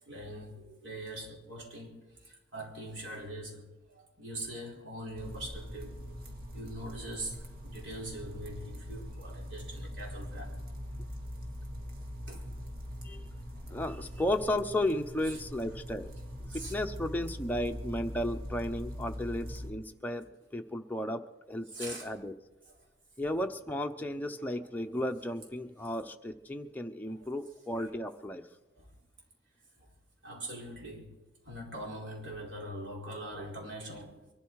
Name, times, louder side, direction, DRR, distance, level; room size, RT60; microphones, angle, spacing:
voice 1, 0.0-2.0 2.2-3.7 3.9-6.1 6.5-10.6 12.3-12.5 15.3-15.4 16.5-16.7 21.7-22.1 27.8-27.9 28.8-28.9 29.8-29.9 30.2-31.1 31.4-34.3, right 1 dB, 70° right, 4.5 m, -42 dB
sound 1, 5.2-19.7, equal, 55° right, 2.4 m, -42 dB
voice 2, 13.7-16.1 16.5-22.3 23.2-28.5, left 1 dB, 10° left, 0.8 m, -34 dB
23.5 x 12.5 x 4.8 m
head